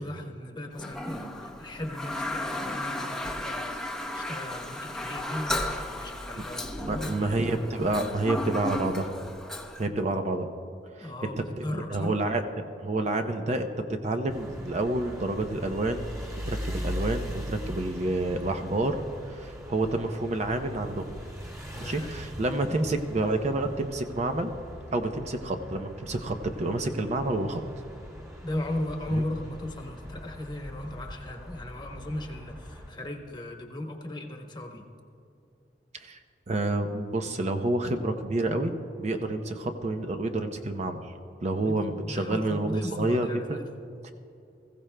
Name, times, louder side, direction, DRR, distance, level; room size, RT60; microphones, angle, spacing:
voice 1, 0.0-3.8 4.1-7.4 11.0-12.2 21.7-22.1 28.4-34.8 41.6-41.8 42.0-43.7, left 1 dB, 25° left, 2 dB, 1.1 m, -37 dB
Toilet flush, 0.7-9.9, left 1 dB, 5° left, 0.7 m, -34 dB
voice 2, 6.8-9.1 9.8-10.5 11.0-11.3 11.6-12.4 12.8-16.1 16.4-21.1 21.8-24.5 24.9-27.6 29.1-29.2 35.9-36.2 36.5-41.1 41.4-43.6 44.0-44.1, right 2 dB, 40° right, 6 dB, 0.6 m, -29 dB
sound 1, 14.3-32.9, equal, 20° right, 2.0 m, -41 dB
20.5 x 15.5 x 2.2 m, 2.7 s
head